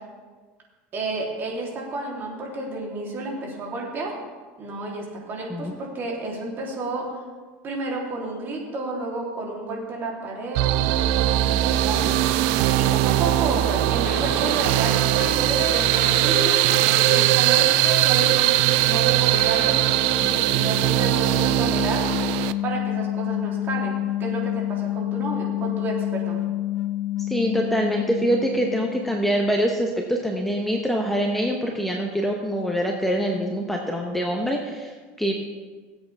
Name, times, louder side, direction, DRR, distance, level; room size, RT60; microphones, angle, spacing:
voice 1, 0.9-4.1 4.6-7.0 7.6-12.1 12.7-17.7 18.0-22.0 22.6-26.4, right 2 dB, 35° right, -2 dB, 3.3 m, -31 dB
sound 1, 10.5-22.5, right 15 dB, 70° right, 0.5 m, -20 dB
Wind instrument woodwind instrument, 14.0-20.6, left 7 dB, 80° left, 1.2 m, -35 dB
sound 2, 19.5-29.6, left 14 dB, 45° left, 1.2 m, -29 dB
voice 2, 27.2-35.3, equal, 5° left, 1 dB, 1.0 m, -24 dB
18.5 x 8.1 x 3.5 m, 1.4 s
supercardioid pair, 125°, 6 cm